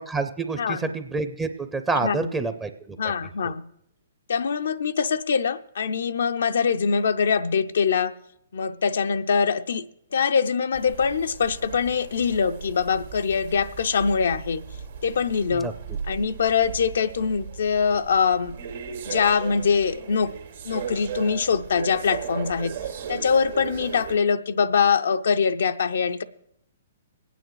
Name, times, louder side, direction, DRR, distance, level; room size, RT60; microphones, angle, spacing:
voice 1, 0.0-3.0 3.4-3.5 15.6-15.7, right 3 dB, 10° right, 0.5 m, -28 dB
voice 2, 0.6-0.9 2.0-2.3 3.0-3.7 4.3-8.1 8.5-9.9 10.1-14.6 15.0-15.7 16.1-18.6 19.1-20.3 20.6-22.8 23.1-26.2, left 6 dB, 75° left, 0.4 m, -23 dB
sound 1, 10.7-24.2, right 7 dB, 75° right, 1.9 m, -37 dB
23.5 x 9.0 x 3.1 m
hypercardioid pair, 135°, 0 cm